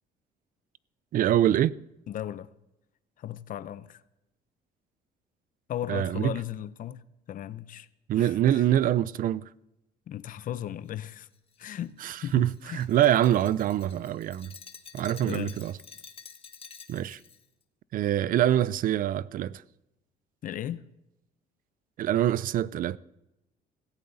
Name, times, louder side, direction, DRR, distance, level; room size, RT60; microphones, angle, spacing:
voice 1, 1.1-1.7 5.9-6.4 8.1-9.5 12.0-14.5 14.9-15.7 16.9-17.2 17.9-19.6 22.0-23.0, right 11 dB, 55° right, 0.5 m, -25 dB
voice 2, 2.1-2.5 3.2-4.0 5.7-7.0 7.3-7.9 8.2-8.6 10.1-11.3 11.6-12.8 15.2-15.6 20.4-20.8, left 11 dB, 55° left, 0.7 m, -36 dB
Glass, 11.1-17.4, left 6 dB, 35° left, 1.3 m, -50 dB
17.5 x 16.0 x 4.1 m
cardioid pair, 110°, 17 cm